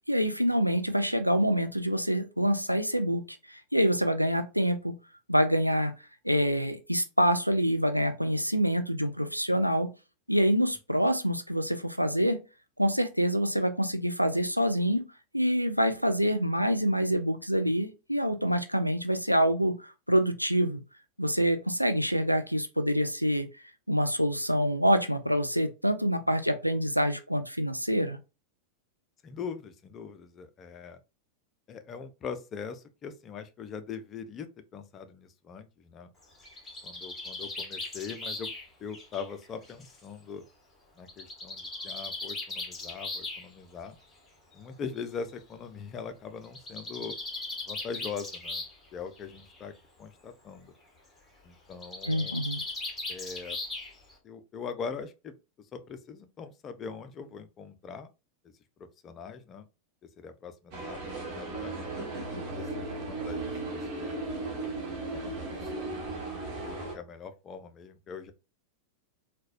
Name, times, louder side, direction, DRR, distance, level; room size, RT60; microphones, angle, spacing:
voice 1, 0.1-4.9 5.3-5.9 6.2-9.9 10.3-12.4 12.8-15.0 15.3-20.8 21.2-23.5 23.9-28.2 52.1-52.6, equal, 90° right, 0.3 m, -26 dB
voice 2, 29.2-31.0 31.7-36.1 36.8-38.5 38.8-40.4 41.0-44.0 44.5-47.2 47.7-48.6 48.9-49.7 50.0-50.7 51.4-52.4 53.1-53.6 54.2-58.1 58.8-59.7 60.0-61.7 62.4-64.2 65.1-65.9 66.4-68.3, left 6 dB, 30° left, 0.4 m, -41 dB
Bird, 36.2-40.0 41.1-43.4 44.5-44.6 45.0-45.1 45.3-45.4 46.4-48.9 49.2-49.6 51.7-54.1, left 2 dB, 10° left, 1.1 m, -38 dB
sound 1, 60.7-66.9, right 2 dB, 40° right, 1.2 m, -36 dB
3.9 x 2.2 x 2.5 m
figure-of-eight pair, 90°, 0 cm